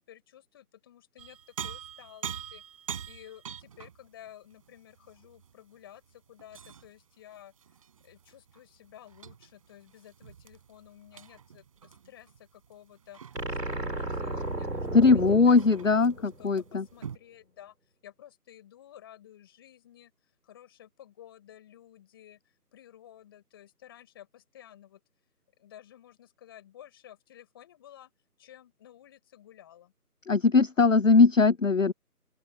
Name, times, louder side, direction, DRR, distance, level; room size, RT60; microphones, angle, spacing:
voice 1, 0.0-2.6 3.1-7.5 8.0-17.7 18.0-20.1 20.4-22.4 22.7-25.0 25.6-28.1 28.4-29.9, left 11 dB, 15° left, 6.2 m, -53 dB
sound 1, 1.2-7.0 7.3-17.2, right 8 dB, 20° right, 5.9 m, -45 dB
sound 2, 13.3-16.7, right 2 dB, 85° right, 3.3 m, -34 dB
voice 2, 14.9-16.8 30.3-31.9, left 4 dB, 55° left, 0.7 m, -20 dB
open air
figure-of-eight pair, 165°, 47 cm